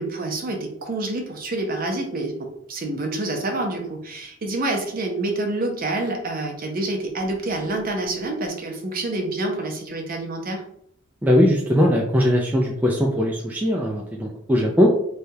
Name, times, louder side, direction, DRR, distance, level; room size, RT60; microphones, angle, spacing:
voice 1, 0.0-10.6, right 2 dB, 45° right, 2 dB, 0.6 m, -27 dB
voice 2, 11.2-14.9, equal, 10° right, -2 dB, 0.3 m, -20 dB
3.3 x 2.3 x 2.7 m, 0.71 s
head